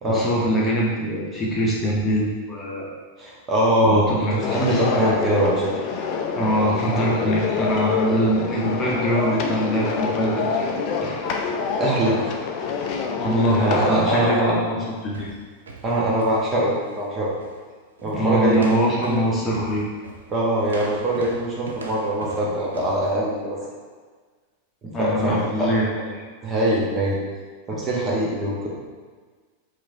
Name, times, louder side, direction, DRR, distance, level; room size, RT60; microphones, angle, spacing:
voice 1, 0.1-2.9 3.8-4.4 4.7-4.8 6.3-10.7 11.0-11.2 13.2-15.3 18.0-19.8 24.8-25.9, right 1 dB, 20° left, -5 dB, 0.8 m, -23 dB
voice 2, 3.2-5.7 11.8-12.2 13.3-14.6 15.8-17.3 18.0-18.6 19.0-19.2 20.3-23.6 24.8-26.0 26.4-27.2 27.7-28.7, right 1 dB, 25° right, -4 dB, 0.9 m, -23 dB
sound 1, 4.4-13.9, left 5 dB, 40° left, 0.4 m, -26 dB
sound 2, 14.8-17.1 17.4-17.6 18.0-18.2 18.5-23.1, right 3 dB, 70° right, 0.4 m, -40 dB
4.6 x 2.5 x 2.7 m, 1.5 s
figure-of-eight pair, 90°, 0 cm